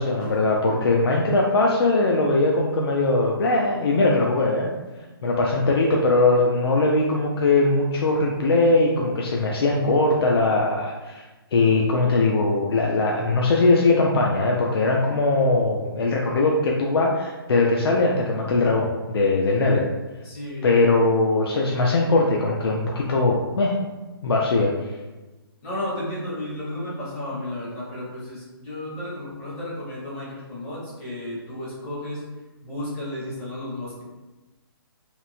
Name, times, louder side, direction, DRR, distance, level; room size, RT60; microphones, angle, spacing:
voice 1, 0.0-4.7 5.2-11.3 11.5-19.9 20.6-23.7 24.2-24.9, left 2 dB, 75° left, -1 dB, 0.4 m, -20 dB
voice 2, 20.2-20.8 25.6-32.2 32.6-34.0, left 1 dB, 10° left, -7 dB, 0.5 m, -33 dB
3.0 x 2.0 x 2.6 m, 1.2 s
hypercardioid pair, 170°, 13 cm